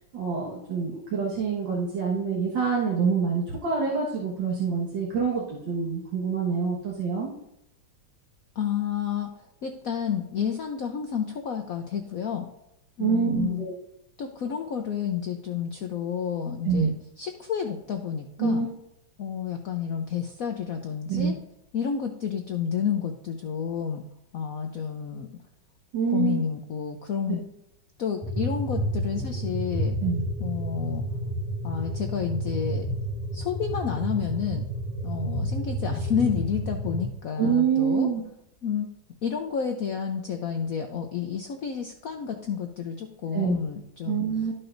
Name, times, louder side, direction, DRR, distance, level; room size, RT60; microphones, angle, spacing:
voice 1, 0.1-7.3 13.0-13.8 16.6-16.9 18.4-18.7 21.1-21.4 25.9-26.4 30.0-30.2 37.4-38.2 43.3-43.6 44.1-44.5, right 6 dB, 65° right, -4 dB, 2.2 m, -26 dB
voice 2, 8.6-9.3 9.6-12.5 13.0-13.7 14.2-18.6 19.2-21.3 21.7-24.0 24.3-25.3 26.1-27.4 28.0-30.0 30.4-31.0 31.6-32.9 33.3-34.6 35.0-38.1 38.6-38.9 39.2-44.2, left 7 dB, 70° left, 5 dB, 0.8 m, -30 dB
sound 1, 28.2-37.1, equal, 25° right, 1.5 m, -30 dB
13.0 x 6.0 x 2.6 m, 0.81 s
omnidirectional pair, 2.3 m